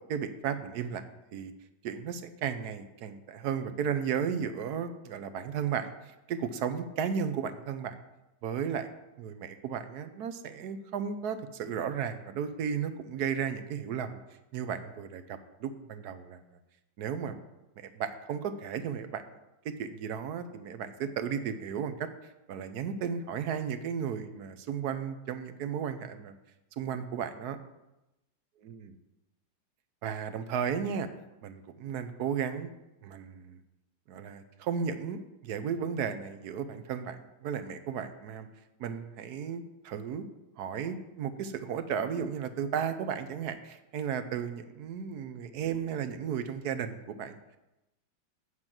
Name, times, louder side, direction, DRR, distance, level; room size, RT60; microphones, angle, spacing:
voice 1, 0.1-1.0 1.3-1.5 1.8-8.0 8.4-8.9 9.2-14.2 14.5-16.4 17.0-17.4 17.8-19.2 19.6-22.1 22.5-26.3 26.8-27.6 28.6-28.9 30.0-31.1 31.4-32.7 33.0-33.6 34.1-38.5 38.8-40.3 40.6-47.4, right 7 dB, 65° right, 10 dB, 1.1 m, -34 dB
8.0 x 6.0 x 7.3 m, 0.96 s
omnidirectional pair, 2.0 m